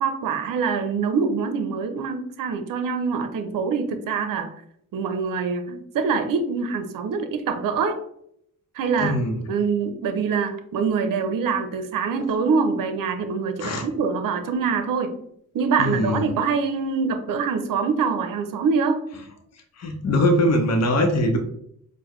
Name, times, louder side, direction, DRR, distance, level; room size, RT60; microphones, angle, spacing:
voice 1, 0.0-4.5 4.9-8.0 8.7-9.1 9.5-15.1 15.5-19.0, right 5 dB, 65° right, 8 dB, 0.6 m, -24 dB
voice 2, 9.0-9.4 13.6-13.8 15.8-16.3 19.8-21.4, left 1 dB, 45° left, 3 dB, 0.8 m, -21 dB
4.6 x 2.1 x 3.0 m, 0.70 s
cardioid pair, 55°, 35 cm